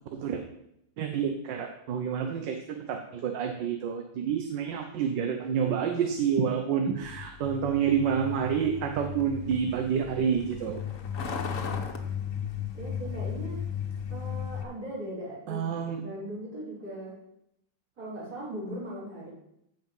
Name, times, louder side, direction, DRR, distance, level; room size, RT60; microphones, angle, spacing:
voice 1, 0.1-0.4 1.0-10.8 15.5-16.0, right 7 dB, 75° right, 5 dB, 1.6 m, -28 dB
Truck, 7.0-14.6, left 7 dB, 50° left, 1.4 m, -35 dB
voice 2, 11.4-11.8 12.7-13.7 14.1-15.7 16.0-17.2 18.0-19.3, right 1 dB, 55° right, -8 dB, 5.9 m, -39 dB
15.0 x 5.4 x 5.4 m, 0.79 s
omnidirectional pair, 2.0 m